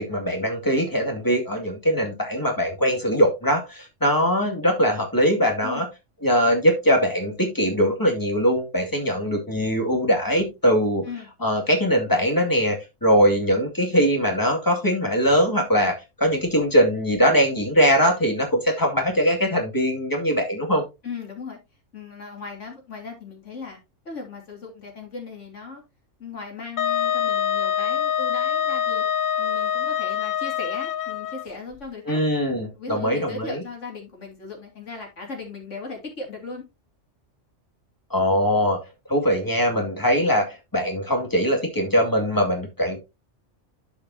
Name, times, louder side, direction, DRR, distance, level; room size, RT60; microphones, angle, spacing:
voice 1, 0.0-5.9 6.2-11.1 11.4-20.8 32.1-33.6 38.1-38.8 39.1-43.0, equal, 15° left, 1 dB, 2.1 m, -21 dB
voice 2, 21.0-21.6 21.9-23.8 24.0-25.8 26.2-29.0 29.4-32.2 32.5-36.6, left 4 dB, 75° left, 1 dB, 3.1 m, -37 dB
Wind instrument woodwind instrument, 26.8-31.5, left 9 dB, 60° left, 0.6 m, -25 dB
12.0 x 5.1 x 2.7 m, 0.24 s
omnidirectional pair, 1.3 m